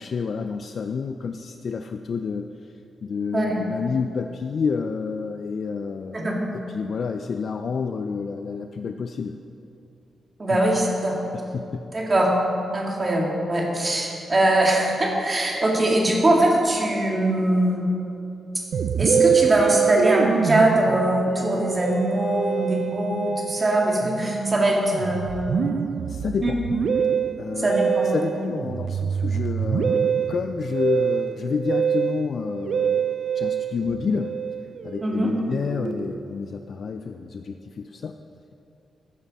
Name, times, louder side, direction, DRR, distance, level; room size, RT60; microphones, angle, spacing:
voice 1, 0.0-2.5 3.0-6.3 6.7-9.3 10.5-10.6 11.3-11.8 26.1-26.6 27.4-27.8 28.1-34.3 34.8-38.1, left 5 dB, 50° left, 5 dB, 0.5 m, -29 dB
voice 2, 10.4-11.2 11.9-12.3 12.7-17.9 18.5-18.6 19.0-25.6 26.4-26.5 27.6-28.1 35.0-35.3, right 1 dB, 25° right, -2 dB, 2.3 m, -22 dB
Musical instrument, 18.7-36.3, right 7 dB, 65° right, 0.5 m, -26 dB
14.5 x 13.5 x 4.2 m, 2.7 s
wide cardioid pair, 155°, 0 cm